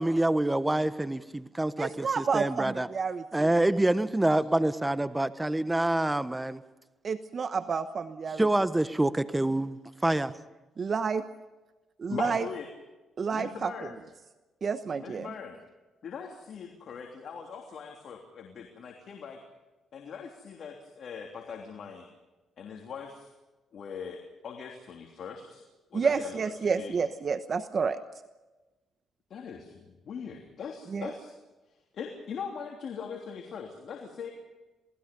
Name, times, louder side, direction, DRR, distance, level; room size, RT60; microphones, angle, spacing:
voice 1, 0.0-2.9 3.3-6.6 8.4-9.8 10.0-10.3, right 1 dB, 10° right, 12 dB, 1.2 m, -26 dB
voice 2, 1.8-3.5 7.0-8.5 10.0-10.2 10.8-11.2 12.0-12.4 13.2-13.7 14.6-15.3 25.9-28.0 30.9-31.1, right 5 dB, 45° right, 10 dB, 1.0 m, -30 dB
voice 3, 12.1-12.7 13.3-14.0 15.0-15.6 16.0-19.4 19.9-22.1 22.6-23.3 23.7-25.6 25.9-26.9 29.3-31.3 31.9-34.3, left 6 dB, 60° left, 1 dB, 3.2 m, -41 dB
27.5 x 19.5 x 5.4 m, 1.1 s
cardioid pair, 90°, 0 cm